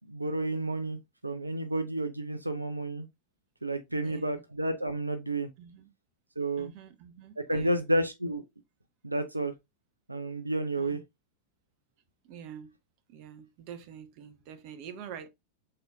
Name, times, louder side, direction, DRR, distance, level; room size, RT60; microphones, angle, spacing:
voice 1, 0.1-3.1 3.6-5.5 6.4-6.7 7.4-8.4 9.0-9.5 10.1-11.0, right 1 dB, 85° right, 0.5 m, -31 dB
voice 2, 4.0-4.4 5.6-5.9 6.6-7.9 10.8-11.0 12.2-12.7 13.1-15.3, right 8 dB, 45° right, 0.8 m, -46 dB
5.4 x 3.9 x 2.3 m
figure-of-eight pair, 90°, 0 cm